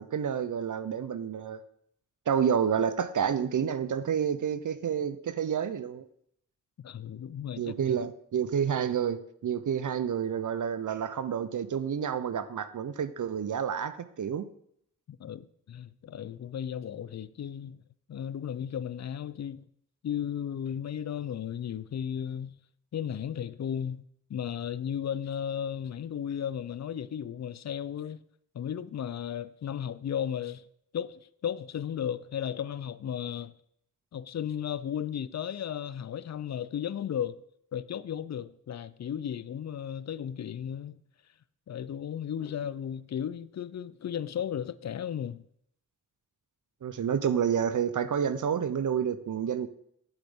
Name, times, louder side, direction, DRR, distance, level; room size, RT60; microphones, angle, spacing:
voice 1, 0.0-1.6 2.3-6.0 7.6-14.5 46.8-49.7, right 8 dB, 65° right, 0.6 m, -29 dB
voice 2, 6.8-8.1 15.1-17.8 18.1-19.6 20.0-22.6 22.9-24.0 24.3-28.2 28.5-30.6 30.9-33.5 34.1-37.4 37.7-41.0 41.7-45.4, left 9 dB, 55° left, 0.5 m, -35 dB
7.5 x 7.2 x 3.6 m
cardioid pair, 45°, 33 cm